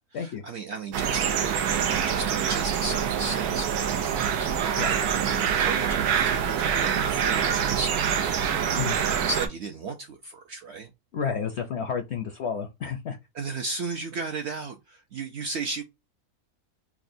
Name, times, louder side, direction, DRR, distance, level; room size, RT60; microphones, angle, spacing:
voice 1, 0.0-8.4 8.9-10.9 13.3-15.8, right 3 dB, 65° right, 0.7 m, -35 dB
sound 1, 0.9-9.5, right 8 dB, 85° right, 1.2 m, -25 dB
voice 2, 11.1-13.2, left 6 dB, 65° left, 0.7 m, -31 dB
5.8 x 2.1 x 2.6 m
omnidirectional pair, 1.6 m